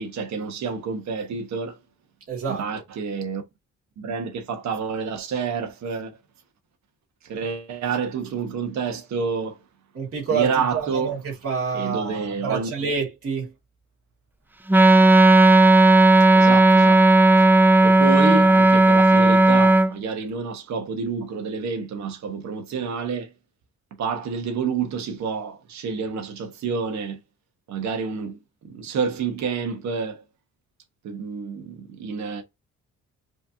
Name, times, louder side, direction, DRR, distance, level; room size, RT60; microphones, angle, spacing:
voice 1, 0.0-1.8 2.5-3.4 4.0-6.2 7.2-9.6 10.3-11.2 11.7-12.9 16.3-17.1 17.8-23.3 24.0-27.2 27.7-30.2 31.0-32.4, right 5 dB, 65° right, 1.1 m, -29 dB
voice 2, 2.3-2.6 9.9-13.5, right 5 dB, 50° right, 2.1 m, -28 dB
Wind instrument woodwind instrument, 14.7-19.9, right 2 dB, 5° right, 0.4 m, -14 dB
4.9 x 2.9 x 2.7 m
cardioid pair, 90°, 30 cm